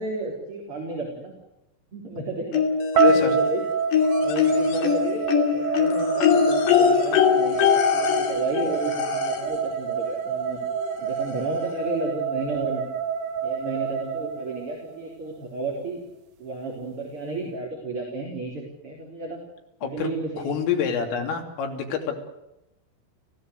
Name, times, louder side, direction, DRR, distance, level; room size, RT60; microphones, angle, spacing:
voice 1, 0.0-1.3 1.9-2.7 3.1-3.6 4.2-10.6 11.0-12.8 13.4-16.0 16.4-19.4 19.8-20.5, right 2 dB, 30° right, -1 dB, 4.1 m, -32 dB
sound 1, 2.5-3.5 3.9-9.6 10.8-10.9 11.3-11.4, left 7 dB, 60° left, 4.2 m, -22 dB
voice 2, 3.0-3.4 19.8-20.1 20.4-22.2, left 7 dB, 80° left, 2 dB, 5.6 m, -27 dB
sound 2, 3.0-15.1, right 7 dB, 70° right, 2.1 m, -27 dB
28.5 x 16.0 x 8.2 m, 0.89 s
omnidirectional pair, 5.8 m